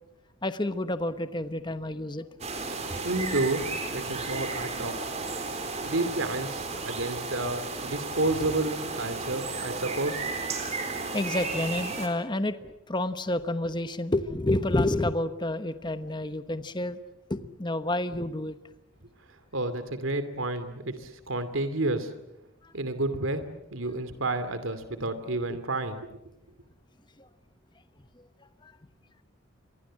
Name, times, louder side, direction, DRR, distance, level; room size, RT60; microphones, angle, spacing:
voice 1, 0.4-2.3 11.1-17.0 17.3-18.6 22.6-22.7 25.5-25.6 27.2-27.3 28.4-28.7, left 1 dB, 25° left, 11 dB, 1.0 m, -29 dB
sound 1, 2.4-12.1, right 3 dB, 35° right, 4.1 m, -34 dB
voice 2, 2.7-3.7 3.9-5.0 5.8-10.2 19.5-22.1 22.7-23.4 23.7-26.1, right 2 dB, 80° right, 11 dB, 2.6 m, -30 dB
29.5 x 24.0 x 7.6 m, 0.90 s
head